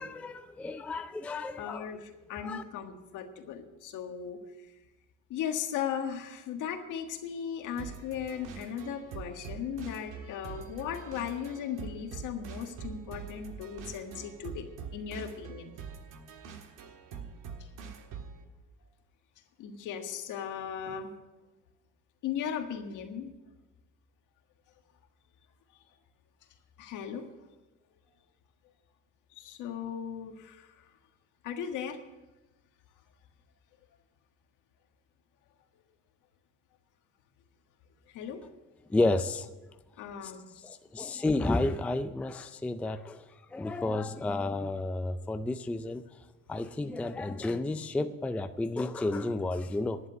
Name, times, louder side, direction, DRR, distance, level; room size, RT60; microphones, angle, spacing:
voice 1, 0.0-1.9 2.4-2.6 38.9-39.5 40.2-40.3 40.6-43.3 43.5-46.0 46.5-50.0, left 2 dB, 5° left, 9 dB, 0.3 m, -31 dB
voice 2, 1.6-4.4 5.3-14.7 14.9-15.7 19.6-21.1 22.2-23.3 26.8-27.3 29.3-30.9 31.4-32.0 38.1-38.4 40.0-40.4, left 8 dB, 70° left, 5 dB, 1.6 m, -37 dB
sound 1, 7.8-18.4, right 5 dB, 80° right, 1.6 m, -44 dB
11.5 x 7.6 x 9.1 m, 1.1 s
cardioid pair, 140°, 31 cm